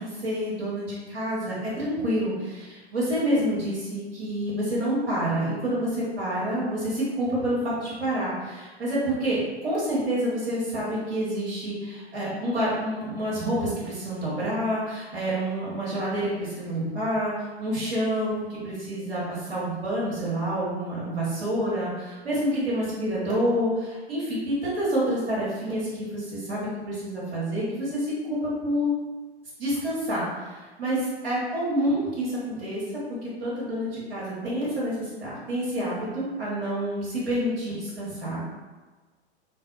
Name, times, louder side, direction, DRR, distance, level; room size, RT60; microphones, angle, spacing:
voice 1, 0.0-28.9 29.6-32.8 33.2-38.5, equal, 60° right, -7 dB, 1.0 m, -28 dB
2.6 x 2.4 x 2.4 m, 1.3 s
figure-of-eight pair, 100°, 32 cm